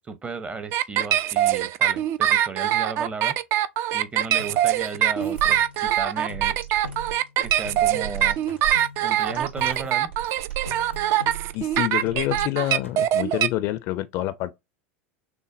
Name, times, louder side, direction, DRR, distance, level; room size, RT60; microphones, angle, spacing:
voice 1, 0.0-3.4 3.9-6.6 7.4-8.4 9.0-10.1, right 4 dB, 20° right, 0.7 m, -35 dB
sound 1, 0.7-13.5, right 11 dB, 40° right, 0.3 m, -23 dB
sound 2, 4.4-7.4 7.7-10.4 10.7-11.7 12.0-13.1, left 4 dB, 90° left, 0.7 m, -42 dB
sound 3, 5.3-12.5, right 12 dB, 60° right, 2.4 m, -37 dB
voice 2, 11.5-14.5, left 15 dB, 45° left, 0.4 m, -27 dB
6.2 x 2.1 x 2.5 m
figure-of-eight pair, 80°, 7 cm